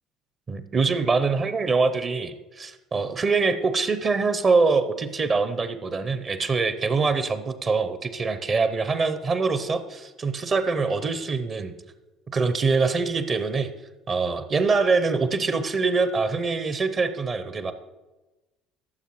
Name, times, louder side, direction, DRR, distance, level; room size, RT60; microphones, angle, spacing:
voice 1, 0.5-11.7 12.3-13.7 14.1-17.7, right 4 dB, 35° right, 11 dB, 0.7 m, -24 dB
14.5 x 6.9 x 3.1 m, 1.1 s
figure-of-eight pair, 60°, 0 cm